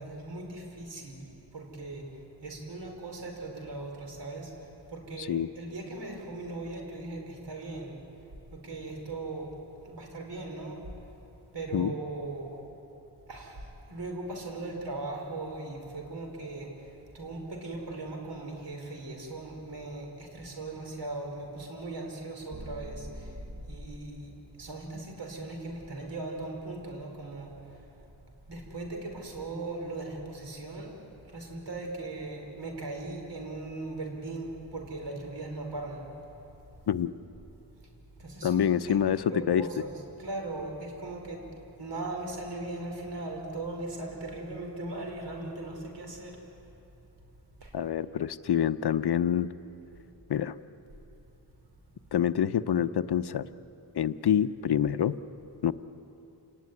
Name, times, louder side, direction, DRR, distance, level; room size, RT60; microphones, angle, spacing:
voice 1, 0.0-8.0 8.5-9.6 9.8-10.8 11.5-12.6 13.3-23.4 23.7-27.9 28.5-36.1 38.2-38.6 38.9-41.5 41.8-46.4 47.6-47.7, right 2 dB, 80° right, 2 dB, 5.0 m, -39 dB
voice 2, 5.2-5.5 11.7-11.9 36.9-37.1 38.4-39.6 47.7-49.5 50.3-50.6 52.1-53.5 53.9-55.2 55.6-55.7, left 9 dB, 70° left, 13 dB, 0.8 m, -26 dB
sound 1, 22.5-24.2, equal, 20° right, 1.5 m, -43 dB
28.5 x 19.0 x 9.7 m, 3.0 s
wide cardioid pair, 95°, 41 cm